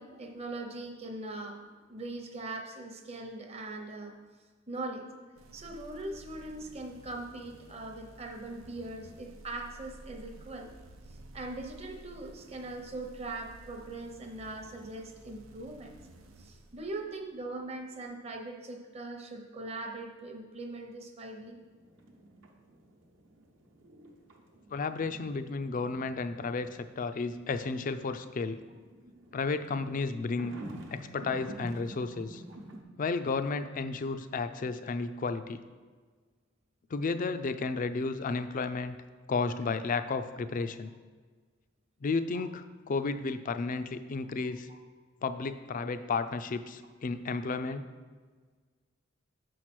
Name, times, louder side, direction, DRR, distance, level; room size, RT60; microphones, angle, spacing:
voice 1, 0.0-4.1 4.7-5.1 5.5-10.7 11.1-15.9 16.4-21.6 38.3-38.4 42.3-42.4 44.7-44.8, right 2 dB, 30° right, 4 dB, 0.8 m, -41 dB
sound 1, 5.3-17.3, right 2 dB, 90° right, 0.7 m, -53 dB
sound 2, 21.4-32.8, right 1 dB, 65° right, 1.0 m, -49 dB
voice 2, 24.7-28.6 29.3-30.5 30.9-32.4 33.0-35.6 36.9-39.0 39.3-40.9 42.0-44.7 45.2-47.8, left 4 dB, 40° left, 11 dB, 0.4 m, -33 dB
6.6 x 4.7 x 6.0 m, 1.5 s
head